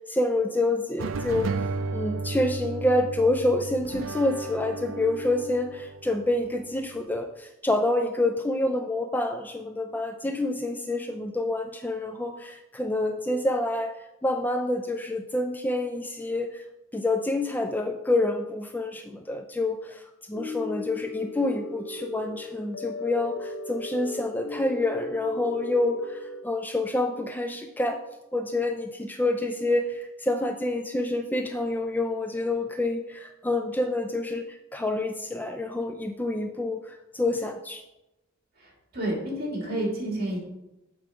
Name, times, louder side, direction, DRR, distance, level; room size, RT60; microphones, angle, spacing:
voice 1, 0.1-1.5 1.9-13.9 14.2-16.6 16.9-20.0 20.3-28.0 28.3-37.8, left 2 dB, 10° left, 5 dB, 0.3 m, -27 dB
sound 1, 1.0-7.2, right 3 dB, 75° right, 0.5 m, -34 dB
sound 2, 20.3-26.4, left 2 dB, 75° left, 0.8 m, -36 dB
voice 2, 38.6-40.4, right 1 dB, 50° right, -2 dB, 2.7 m, -30 dB
7.5 x 4.7 x 5.0 m, 0.95 s
head